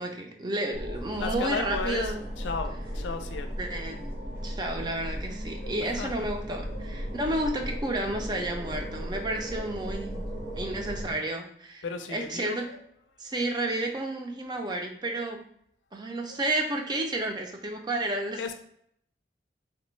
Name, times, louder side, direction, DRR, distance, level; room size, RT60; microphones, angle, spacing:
voice 1, 0.0-2.2 3.6-4.0 4.4-10.2 10.5-11.8 12.1-12.7 13.2-15.4 15.9-18.5, right 1 dB, 25° right, 3 dB, 0.4 m, -31 dB
sound 1, 0.7-11.1, equal, 55° right, 1.1 m, -36 dB
voice 2, 1.0-3.8 5.0-5.2 5.6-6.3 6.7-6.9 7.2-7.3 8.4-8.6 9.5-9.8 11.1-11.3 11.8-12.8 13.2-13.7 15.0-15.2 16.3-16.6 18.4-18.5, left 4 dB, 90° left, 7 dB, 0.4 m, -37 dB
3.3 x 2.1 x 3.1 m, 0.69 s
head